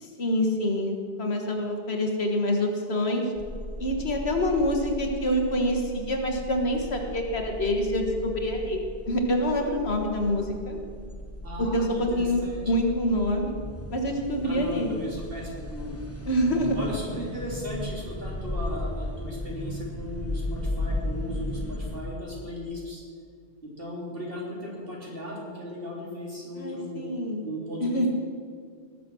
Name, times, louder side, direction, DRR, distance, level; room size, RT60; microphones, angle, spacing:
voice 1, 0.0-3.3 3.8-8.8 9.1-10.8 11.6-13.5 13.9-14.9 16.3-16.9 26.6-27.4 27.8-28.1, equal, 70° left, 3 dB, 1.8 m, -26 dB
sound 1, 3.4-22.0, left 1 dB, 15° left, 1.1 m, -36 dB
voice 2, 11.4-12.6 14.4-16.0 16.8-23.0 23.6-27.0 27.4-28.1, equal, 60° right, -4 dB, 3.6 m, -37 dB
19.0 x 7.2 x 6.2 m, 2.1 s
omnidirectional pair, 1.1 m